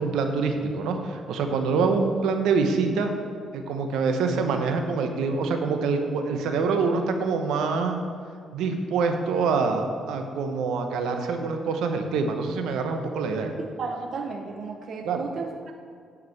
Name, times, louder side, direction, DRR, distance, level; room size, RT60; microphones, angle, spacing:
voice 1, 0.0-3.1 3.5-8.0 8.5-13.6 15.0-15.2, right 4 dB, 85° right, 5 dB, 0.9 m, -25 dB
voice 2, 13.8-15.7, right 4 dB, 60° right, 4 dB, 0.7 m, -34 dB
9.6 x 4.9 x 7.1 m, 2.2 s
cardioid pair, 90°, 0 cm